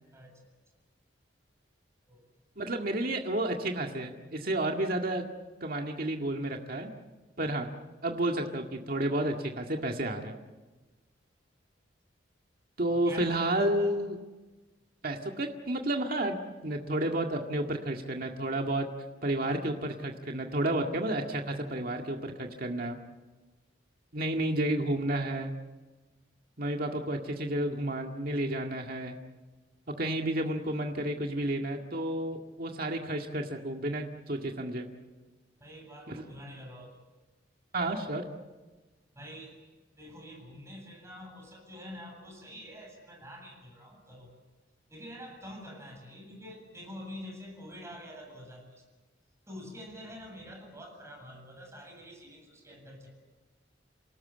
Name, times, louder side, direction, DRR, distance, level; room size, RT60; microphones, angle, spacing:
voice 1, 2.6-5.2 5.6-6.9 7.4-7.7 8.0-10.4 12.8-14.2 15.0-16.4 16.6-18.9 19.2-23.0 24.1-25.5 26.6-29.2 30.0-34.9 36.1-36.2 37.7-38.2, right 1 dB, 55° right, 2 dB, 2.0 m, -31 dB
voice 2, 12.8-14.0 35.6-37.0 39.1-39.6 40.0-44.3 44.9-48.8 49.5-53.1, equal, 15° right, 2 dB, 7.9 m, -46 dB
28.5 x 19.0 x 8.7 m, 1.2 s
head